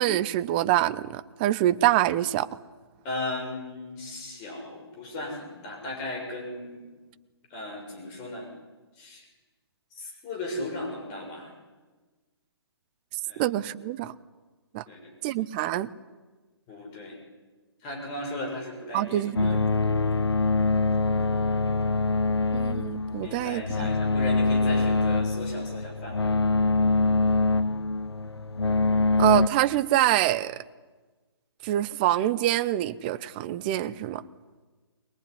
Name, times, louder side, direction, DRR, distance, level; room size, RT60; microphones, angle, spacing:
voice 1, 0.0-2.5 13.4-14.1 14.7-14.8 15.2-15.9 18.9-19.7 19.9-20.0 22.5-23.9 29.2-30.6 31.6-34.2, right 14 dB, 20° right, 16 dB, 0.7 m, -25 dB
voice 2, 3.0-6.9 7.5-8.5 9.0-9.2 9.9-11.5 13.3-13.4 14.9-15.1 16.7-17.2 17.8-19.6 23.2-26.3, left 2 dB, 25° left, 2 dB, 6.6 m, -36 dB
sound 1, 19.4-29.5, left 3 dB, 70° left, 1.0 m, -24 dB
22.5 x 21.0 x 9.8 m, 1.3 s
figure-of-eight pair, 135°, 14 cm